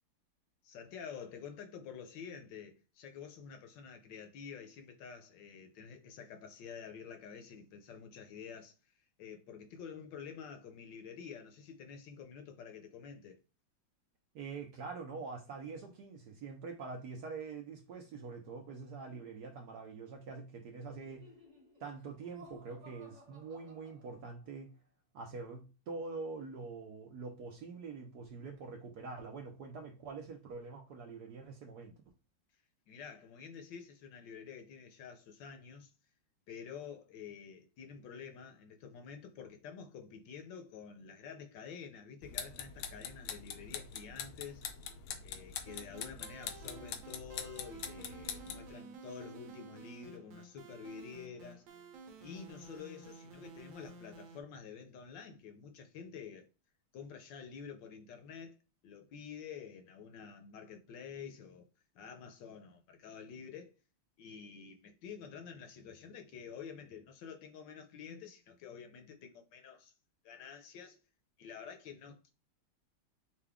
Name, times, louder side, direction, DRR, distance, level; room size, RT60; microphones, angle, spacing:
voice 1, 0.6-8.7 9.2-13.4 32.9-35.9 36.5-44.6 45.2-51.7 52.2-56.5 56.9-58.6 58.8-61.7 61.9-63.7 64.2-69.9 70.2-71.0 71.4-72.3, left 6 dB, 70° left, 1.3 m, -49 dB
voice 2, 14.3-21.3 21.8-24.7 25.1-31.9, right 4 dB, 65° right, 1.1 m, -45 dB
Laughter, 20.8-24.6, equal, 40° right, 2.0 m, -58 dB
sound 1, 42.2-48.7, left 7 dB, 90° left, 1.5 m, -44 dB
sound 2, 45.7-54.4, right 4 dB, 85° right, 1.6 m, -52 dB
5.7 x 2.3 x 3.5 m
omnidirectional pair, 2.2 m